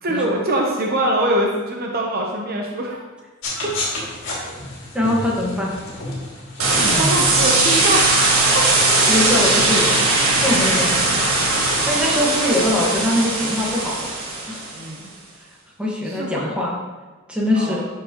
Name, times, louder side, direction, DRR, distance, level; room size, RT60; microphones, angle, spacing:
voice 1, 0.0-3.0 3.6-3.7 7.0-8.1 8.5-8.7 14.7-15.0 16.0-16.6 17.5-17.9, right 1 dB, 45° right, 0 dB, 0.8 m, -23 dB
sound 1, 3.4-12.0, left 2 dB, 60° left, 2.4 m, -34 dB
voice 2, 4.9-5.7 9.1-10.0 10.4-11.1 11.8-14.1 14.5-14.6 15.8-16.7 17.3-17.8, left 1 dB, 5° right, -4 dB, 1.4 m, -22 dB
sound 2, 6.6-14.8, right 2 dB, 70° right, 1.6 m, -19 dB
11.5 x 4.8 x 3.0 m, 1.3 s
head